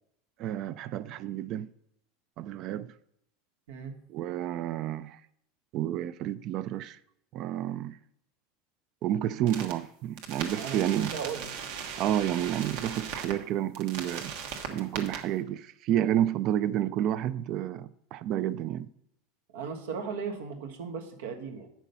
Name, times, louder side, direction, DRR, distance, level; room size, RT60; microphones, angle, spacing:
voice 1, 0.4-1.7 2.4-2.9 4.1-5.2 5.7-7.0 7.3-8.0 9.0-11.2 12.0-14.3 14.7-18.9, right 11 dB, 40° right, 0.3 m, -30 dB
sound 1, 9.5-9.7 10.2-13.3 13.7-15.2, right 7 dB, 60° right, 1.4 m, -38 dB
voice 2, 11.1-11.5 19.5-21.7, right 6 dB, 80° right, 1.3 m, -36 dB
9.0 x 6.2 x 5.4 m
supercardioid pair, 160°, 0 cm